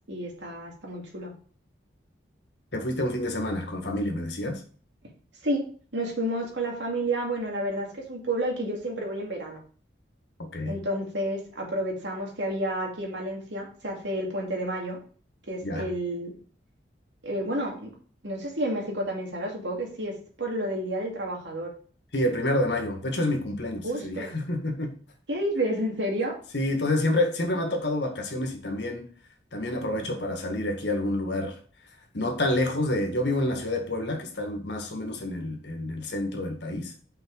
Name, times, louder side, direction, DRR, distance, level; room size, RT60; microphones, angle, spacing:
voice 1, 0.1-1.3 5.4-5.6 5.9-9.6 10.7-15.0 15.5-16.3 17.2-17.9 18.2-20.1 20.4-21.7 23.8-24.4 25.3-26.3 30.1-30.3, right 1 dB, 75° right, 2.4 m, -30 dB
voice 2, 2.7-4.6 10.5-10.8 15.6-15.9 22.1-24.9 26.5-29.1 29.5-31.6 32.1-36.9, left 1 dB, 65° left, 1.7 m, -28 dB
6.0 x 4.9 x 4.7 m
head